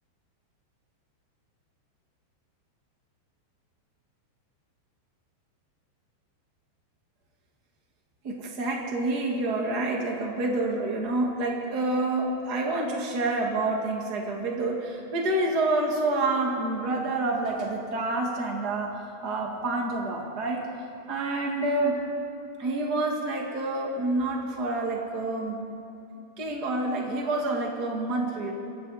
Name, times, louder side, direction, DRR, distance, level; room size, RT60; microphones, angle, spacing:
voice 1, 8.2-20.7 21.1-22.0 22.6-25.6 26.4-28.5, right 2 dB, 55° right, 0 dB, 1.0 m, -28 dB
28.0 x 22.5 x 4.2 m, 2.7 s
omnidirectional pair, 5.2 m